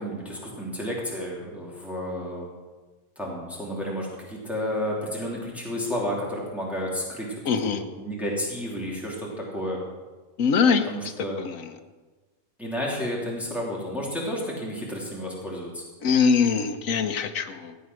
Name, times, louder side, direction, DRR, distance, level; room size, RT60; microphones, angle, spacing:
voice 1, 0.0-2.5 3.2-9.8 10.6-11.4 12.6-15.8, equal, ahead, -4 dB, 2.9 m, -31 dB
voice 2, 7.5-7.8 10.4-10.9 11.4-11.7 16.0-17.8, left 5 dB, 70° left, 9 dB, 1.2 m, -22 dB
15.5 x 8.4 x 6.2 m, 1.3 s
omnidirectional pair, 1.5 m